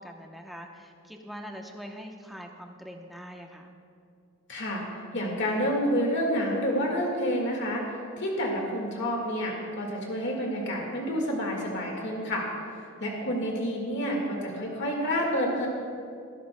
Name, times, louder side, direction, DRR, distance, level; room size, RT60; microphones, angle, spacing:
voice 1, 0.0-3.7 13.3-13.5, equal, ahead, 1 dB, 0.8 m, -43 dB
voice 2, 4.5-4.8 5.1-7.8 8.2-12.5 13.0-15.7, equal, 55° left, -1 dB, 1.8 m, -29 dB
20.0 x 11.0 x 2.2 m, 2.4 s
head